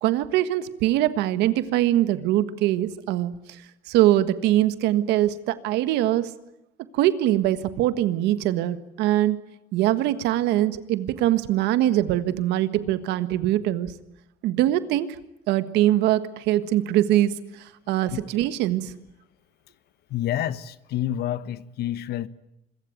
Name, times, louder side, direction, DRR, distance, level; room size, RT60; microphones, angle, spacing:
voice 1, 0.0-6.3 6.9-9.4 9.7-13.9 14.4-15.1 15.5-18.9, right 13 dB, 90° right, 1.6 m, -23 dB
voice 2, 20.1-22.3, left 12 dB, 70° left, 1.2 m, -28 dB
26.0 x 22.5 x 9.3 m
cardioid pair, 110°, 17 cm